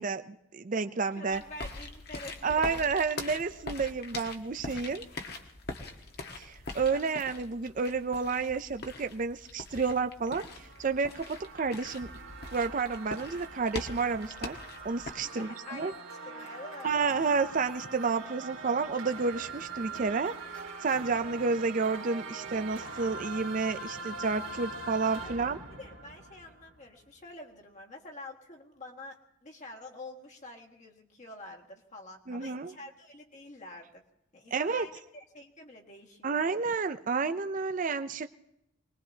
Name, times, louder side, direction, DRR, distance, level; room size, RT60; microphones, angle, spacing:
voice 1, 0.0-1.4 2.4-5.0 6.4-12.1 12.5-14.6 14.8-15.9 16.8-20.3 20.8-25.6 32.3-32.7 34.5-34.9 36.2-38.3, right 4 dB, 40° right, 9 dB, 0.5 m, -30 dB
voice 2, 1.1-2.9 15.2-16.9 25.2-34.0 34.3-36.5, left 2 dB, 40° left, 1 dB, 1.8 m, -47 dB
sound 1, 1.3-15.1, left 2 dB, 55° left, 1.5 m, -42 dB
sound 2, 10.1-27.1, right 3 dB, 85° right, 2.1 m, -43 dB
24.5 x 20.5 x 2.8 m, 0.87 s
head